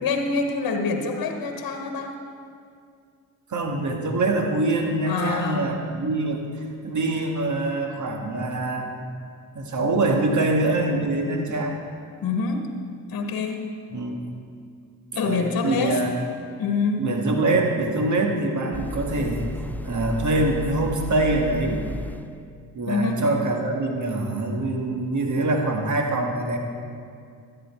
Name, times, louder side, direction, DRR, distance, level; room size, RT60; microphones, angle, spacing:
voice 1, 0.0-2.2 5.0-5.7 12.2-12.7 13.1-13.7 15.1-16.0 16.6-17.1 22.9-23.3, left 4 dB, 60° left, 5 dB, 1.3 m, -26 dB
voice 2, 3.5-6.4 6.8-8.9 9.6-11.8 13.9-14.2 15.1-16.1 17.0-21.8 22.8-26.6, right 2 dB, 50° right, 2 dB, 1.8 m, -24 dB
sound 1, 18.7-22.5, equal, 5° left, 0.4 m, -34 dB
13.0 x 9.6 x 4.4 m, 2.3 s
supercardioid pair, 55°, 38 cm